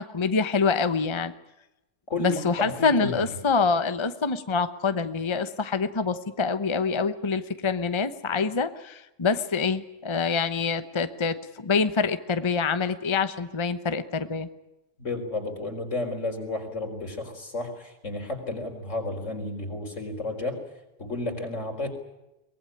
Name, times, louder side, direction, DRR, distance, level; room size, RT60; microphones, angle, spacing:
voice 1, 0.0-1.3 2.2-14.5, left 5 dB, 25° left, 11 dB, 0.9 m, -26 dB
voice 2, 2.1-3.2 15.0-20.6 21.0-21.9, left 2 dB, 75° left, 4 dB, 4.8 m, -32 dB
23.5 x 19.5 x 9.8 m, 0.93 s
omnidirectional pair, 1.3 m